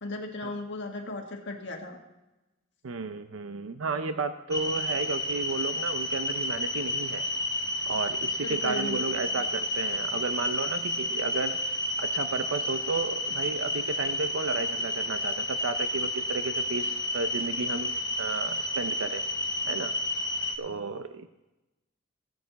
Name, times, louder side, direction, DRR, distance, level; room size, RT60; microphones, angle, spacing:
voice 1, 0.0-2.0 8.4-9.0, left 2 dB, 60° left, 2 dB, 1.6 m, -36 dB
voice 2, 2.8-7.3 7.9-11.7 12.0-19.2 19.7-19.9 20.6-21.3, right 4 dB, 80° right, 9 dB, 0.6 m, -33 dB
sound 1, 4.5-20.6, left 1 dB, 20° left, 0.9 m, -31 dB
18.0 x 8.0 x 4.1 m, 1.0 s
head